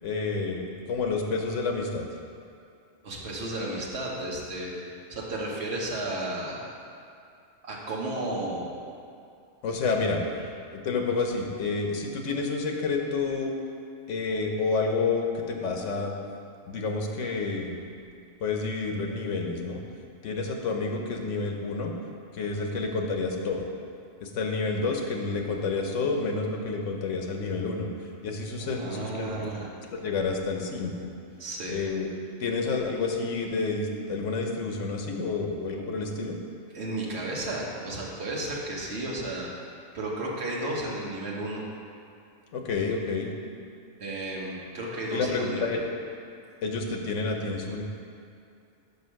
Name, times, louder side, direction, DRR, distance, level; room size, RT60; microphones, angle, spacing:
voice 1, 0.0-2.1 9.6-10.2 10.7-13.5 14.1-16.1 16.7-17.8 18.4-19.8 20.2-21.9 22.3-23.7 24.2-27.9 28.2-29.5 29.9-31.1 31.7-32.1 32.4-36.4 42.5-43.3 45.1-45.8 46.6-47.8, left 4 dB, 80° left, 2 dB, 1.1 m, -29 dB
voice 2, 3.0-6.7 7.6-8.8 28.6-29.7 31.4-31.8 36.7-39.5 39.9-41.6 44.0-45.8, right 1 dB, 60° right, -4 dB, 1.4 m, -33 dB
5.4 x 5.1 x 6.2 m, 2.5 s
omnidirectional pair, 1.3 m